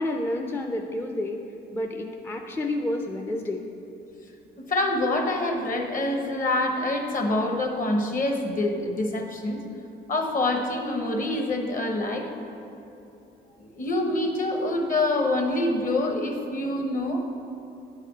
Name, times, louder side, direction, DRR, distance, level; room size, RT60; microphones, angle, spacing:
voice 1, 0.0-1.4 1.7-3.6, left 1 dB, 10° left, 2 dB, 0.4 m, -29 dB
voice 2, 4.6-9.6 10.1-12.3 13.6-17.2, left 2 dB, 45° left, 3 dB, 1.0 m, -26 dB
9.7 x 4.2 x 5.1 m, 2.9 s
cardioid pair, 90°, 20 cm